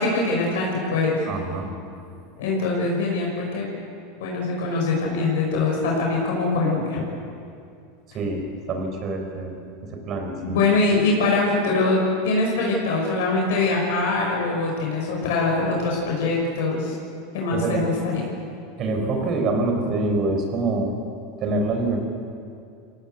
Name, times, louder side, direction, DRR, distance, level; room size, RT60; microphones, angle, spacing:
voice 1, 0.0-1.2 2.4-3.7 4.2-7.0 10.4-16.9 17.3-18.2, left 3 dB, 75° left, -2 dB, 5.7 m, -23 dB
voice 2, 1.3-1.7 8.1-9.5 9.8-10.6 17.5-17.9 18.8-20.9 21.4-22.0, right 2 dB, 45° right, 4 dB, 4.6 m, -25 dB
23.0 x 17.0 x 8.0 m, 2.4 s
hypercardioid pair, 95°, 0 cm